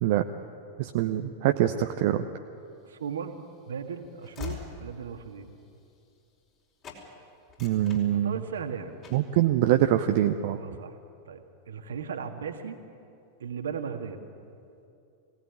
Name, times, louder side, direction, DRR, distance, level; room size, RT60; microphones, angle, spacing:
voice 1, 0.8-2.3 7.6-8.3 9.1-10.6, right 12 dB, 50° right, 6 dB, 0.8 m, -24 dB
voice 2, 2.8-3.4 3.7-5.5 8.1-8.9 10.6-11.0 11.3-12.8 13.4-14.2, right 6 dB, 65° right, 6 dB, 1.9 m, -36 dB
Train / Slam, 2.9-6.6 6.8-7.1 7.4-8.6 9.0-9.4, left 7 dB, 35° left, 4.8 m, -44 dB
23.5 x 17.5 x 9.7 m, 2.6 s
figure-of-eight pair, 90°, 0 cm